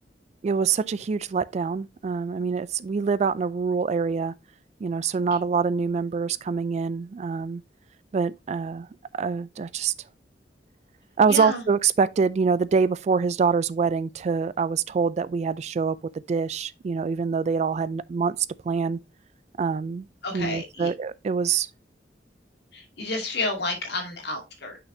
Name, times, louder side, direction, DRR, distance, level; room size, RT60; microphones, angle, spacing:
voice 1, 0.4-4.3 4.8-7.6 8.1-8.9 9.1-9.9 11.2-16.0 16.3-18.4 18.6-19.0 19.6-20.1 20.3-21.7, right 5 dB, 40° right, 0.3 m, -25 dB
voice 2, 11.3-11.6 20.2-20.9 22.7-24.8, left 2 dB, 65° left, 2.2 m, -30 dB
6.5 x 5.8 x 2.7 m
head